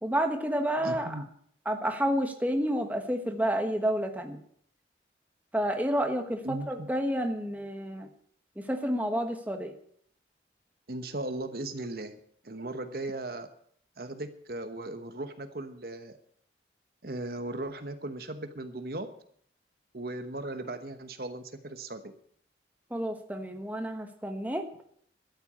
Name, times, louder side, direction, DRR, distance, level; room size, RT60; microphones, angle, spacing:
voice 1, 0.0-1.2 1.6-4.4 5.5-8.1 8.6-9.7 22.9-24.6, equal, 10° right, 4 dB, 1.3 m, -30 dB
voice 2, 0.8-1.2 6.4-6.9 10.9-12.2 12.4-13.5 14.0-16.2 17.0-19.1 19.9-22.1, right 2 dB, 55° right, 9 dB, 1.1 m, -37 dB
12.5 x 8.1 x 8.7 m, 0.64 s
head